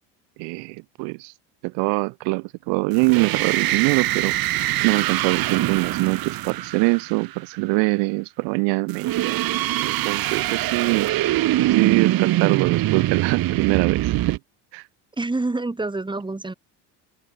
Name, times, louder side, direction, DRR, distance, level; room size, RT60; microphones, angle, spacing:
voice 1, 0.4-1.3 1.6-4.4 4.8-9.4 9.8-11.1 11.6-14.4 14.7-14.8, right 31 dB, 80° right, 2.5 m, -23 dB
sound 1, 2.9-7.4 8.9-14.4, right 15 dB, 55° right, 3.8 m, -23 dB
voice 2, 15.2-16.5, right 2 dB, 10° right, 6.4 m, -27 dB
cardioid pair, 120°, 41 cm